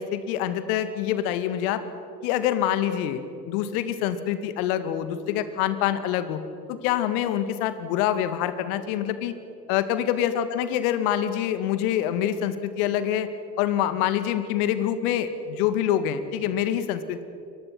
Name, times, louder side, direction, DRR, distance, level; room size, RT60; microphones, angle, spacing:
voice 1, 0.0-1.8 2.2-3.2 3.5-6.4 6.7-9.3 9.7-13.3 13.6-17.2, left 10 dB, 55° left, 11 dB, 2.3 m, -25 dB
30.0 x 23.5 x 6.1 m, 2.7 s
figure-of-eight pair, 75°, 50 cm